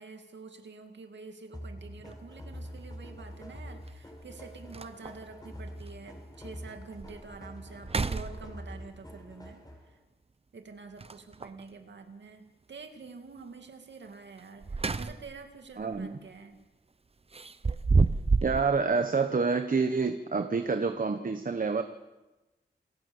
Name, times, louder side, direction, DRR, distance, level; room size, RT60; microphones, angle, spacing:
voice 1, 0.0-10.0 10.5-16.6, right 4 dB, 85° right, 5 dB, 2.3 m, -47 dB
sound 1, 1.5-10.0, equal, 20° left, 5.0 m, -45 dB
sound 2, 2.0-2.1 3.9-4.0 4.4-4.5 4.7-5.3 5.9-6.0 6.5-6.6 7.0-7.4 7.8-8.9 11.0-11.6 14.4-15.4 15.8-16.0 17.3-18.6, right 4 dB, 35° right, 0.8 m, -29 dB
voice 2, 15.8-16.2 18.4-21.8, right 4 dB, 50° right, 8 dB, 1.2 m, -28 dB
28.0 x 12.5 x 8.0 m, 1.1 s
wide cardioid pair, 85°, 18 cm